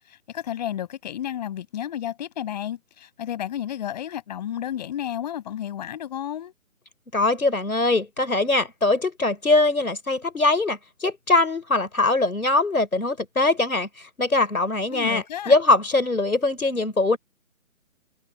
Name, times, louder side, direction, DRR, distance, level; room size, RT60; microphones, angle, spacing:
voice 1, 0.0-6.5 14.9-15.5, left 10 dB, 30° left, 6.5 m, -32 dB
voice 2, 7.1-17.2, left 2 dB, 85° left, 5.1 m, -22 dB
figure-of-eight pair, 150°, 42 cm